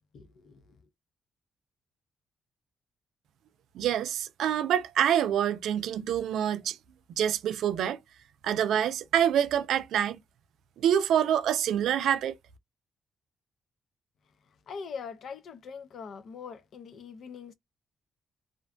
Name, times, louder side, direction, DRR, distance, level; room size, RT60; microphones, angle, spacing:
voice 1, 0.1-0.8 14.5-17.5, left 6 dB, 65° left, 0.5 m, -42 dB
voice 2, 3.7-6.8 7.1-8.0 8.4-10.2 10.8-12.4, right 9 dB, 85° right, 0.4 m, -26 dB
2.5 x 2.2 x 2.4 m
cardioid pair, 95°, 0 cm